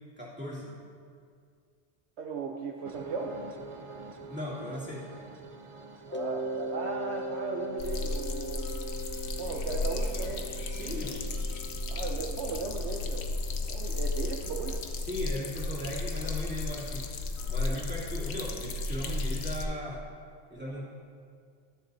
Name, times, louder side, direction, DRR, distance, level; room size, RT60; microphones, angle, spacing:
voice 1, 0.2-0.7 4.3-5.1 10.7-11.2 15.0-17.0 17.5-20.0 20.5-20.8, left 1 dB, 10° right, -8 dB, 2.6 m, -37 dB
voice 2, 2.2-3.4 6.1-8.7 9.4-10.5 11.9-13.3 13.7-14.8, right 4 dB, 70° right, 2 dB, 1.0 m, -36 dB
sound 1, 2.8-11.0, right 4 dB, 40° right, 0.5 m, -49 dB
Mallet percussion, 6.1-14.7, right 1 dB, 20° left, 0.3 m, -40 dB
sound 2, 7.8-19.6, left 2 dB, 70° left, 1.0 m, -34 dB
19.5 x 6.8 x 2.7 m, 2.2 s
omnidirectional pair, 1.2 m